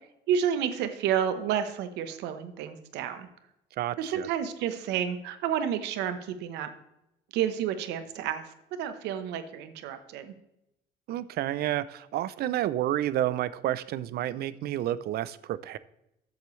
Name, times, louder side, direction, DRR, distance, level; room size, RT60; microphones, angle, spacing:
voice 1, 0.3-3.3 4.0-6.7 7.3-10.3, right 9 dB, 90° right, 10 dB, 1.1 m, -30 dB
voice 2, 3.8-4.3 11.1-15.8, right 13 dB, 70° right, 17 dB, 0.6 m, -30 dB
14.0 x 7.8 x 3.2 m, 0.85 s
cardioid pair, 110°, 17 cm